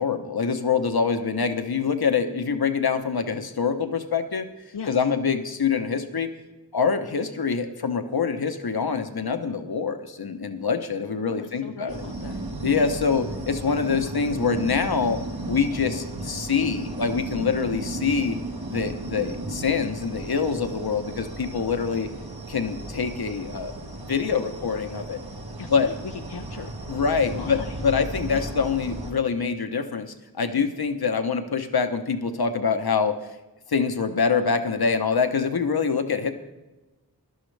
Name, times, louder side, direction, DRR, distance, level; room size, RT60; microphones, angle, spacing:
voice 1, 0.0-4.5 4.9-6.3 6.7-11.9 12.6-15.2 15.5-18.4 18.7-22.1 22.5-23.7 24.1-25.2 25.7-25.9 26.9-33.1 33.7-36.3, left 5 dB, 70° left, 8 dB, 1.0 m, -25 dB
voice 2, 4.7-5.1 11.2-12.4 12.7-12.9 17.4-17.6 21.9-22.0 25.6-26.7 27.3-27.8 28.3-28.5 30.5-30.8, left 6 dB, 90° left, 4 dB, 0.6 m, -39 dB
sound 1, 11.9-29.1, right 2 dB, 70° right, 1.7 m, -35 dB
17.0 x 11.5 x 3.3 m, 1.1 s
wide cardioid pair, 50°, 39 cm